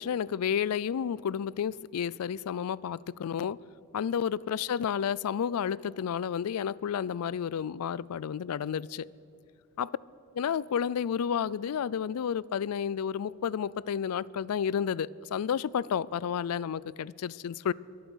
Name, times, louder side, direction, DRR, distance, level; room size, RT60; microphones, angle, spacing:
voice 1, 0.0-3.6 3.9-9.1 9.8-9.9 10.3-17.7, left 8 dB, 80° left, 0.4 m, -31 dB
23.0 x 9.3 x 6.3 m
head